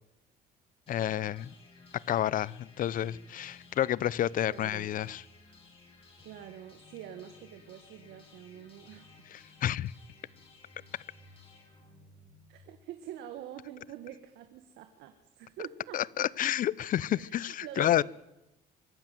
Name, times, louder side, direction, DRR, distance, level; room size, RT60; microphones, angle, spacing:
voice 1, 0.9-1.5 2.1-5.2 9.3-9.9 15.9-18.0, left 11 dB, 55° left, 23 dB, 0.7 m, -30 dB
sound 1, 0.9-12.8, left 3 dB, 35° left, 7.9 m, -57 dB
voice 2, 4.5-4.9 6.2-9.1 12.5-16.3 17.1-18.0, right 11 dB, 80° right, 8 dB, 1.8 m, -46 dB
24.5 x 12.0 x 9.3 m, 0.92 s
cardioid pair, 110°, 17 cm